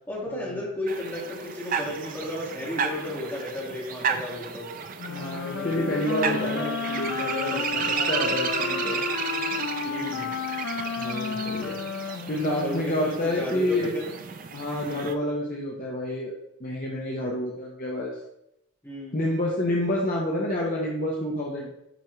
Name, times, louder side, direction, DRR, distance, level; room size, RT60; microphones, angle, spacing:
voice 1, 0.1-4.7 5.6-6.0 6.4-6.7 7.4-7.6 9.8-10.3 12.6-14.1 14.8-15.1 18.8-19.2, left 1 dB, 10° left, -7 dB, 2.0 m, -34 dB
sound 1, 0.9-15.1, right 6 dB, 40° right, 0.4 m, -33 dB
Wind instrument woodwind instrument, 5.0-13.2, left 6 dB, 65° left, 0.4 m, -32 dB
voice 2, 5.1-9.0 11.0-11.8 12.3-13.9 14.5-18.1 19.1-21.7, left 1 dB, 40° left, -2 dB, 0.7 m, -29 dB
9.0 x 3.5 x 3.2 m, 0.83 s
head